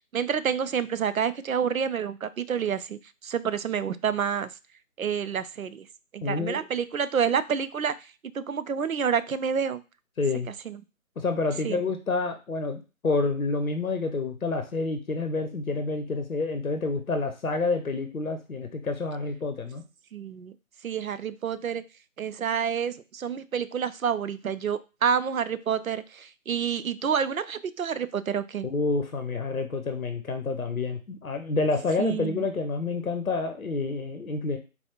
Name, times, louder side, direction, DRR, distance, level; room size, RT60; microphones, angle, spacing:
voice 1, 0.1-4.5 5.0-5.9 6.1-9.8 10.7-10.8 11.6-11.8 20.1-20.5 20.8-21.8 22.2-28.7 32.0-32.4, right 7 dB, 70° right, 14 dB, 0.5 m, -28 dB
voice 2, 6.2-6.6 10.2-10.5 11.2-19.8 28.6-34.6, left 3 dB, 75° left, 7 dB, 0.7 m, -28 dB
4.0 x 2.4 x 2.8 m, 0.31 s
figure-of-eight pair, 155°, 42 cm